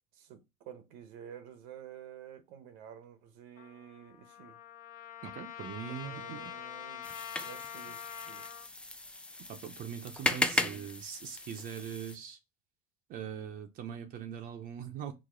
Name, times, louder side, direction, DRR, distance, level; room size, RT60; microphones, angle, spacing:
voice 1, 0.1-4.6 5.9-7.1 7.4-8.5 10.2-10.9, right 9 dB, 70° right, 0.9 m, -50 dB
Trumpet, 3.6-8.7, left 11 dB, 45° left, 0.7 m, -45 dB
voice 2, 5.2-6.5 9.5-12.4 13.1-15.1, right 8 dB, 45° right, 0.7 m, -41 dB
sound 1, 7.0-12.2, left 2 dB, 5° left, 0.3 m, -36 dB
4.9 x 2.0 x 3.7 m
supercardioid pair, 115°, 20 cm